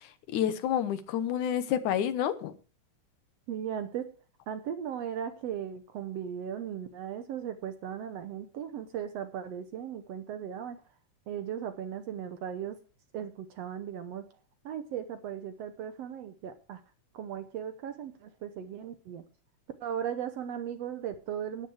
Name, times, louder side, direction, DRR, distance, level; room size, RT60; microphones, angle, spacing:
voice 1, 0.0-2.6, left 10 dB, 75° left, 2.5 m, -29 dB
voice 2, 3.5-4.1 4.5-10.8 11.3-12.8 13.1-14.2 14.6-16.8 17.1-19.2 19.8-21.7, right 9 dB, 65° right, 1.7 m, -37 dB
13.0 x 9.9 x 4.8 m
omnidirectional pair, 3.6 m